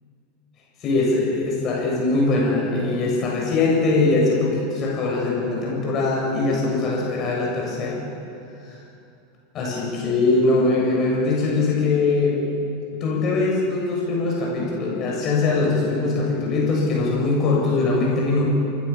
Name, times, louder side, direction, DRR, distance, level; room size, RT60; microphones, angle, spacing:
voice 1, 0.8-8.0 8.6-8.8 9.5-12.4 12.9-18.4, left 3 dB, 35° left, -3 dB, 7.7 m, -22 dB
27.5 x 19.5 x 7.3 m, 2.6 s
figure-of-eight pair, 85°, 0 cm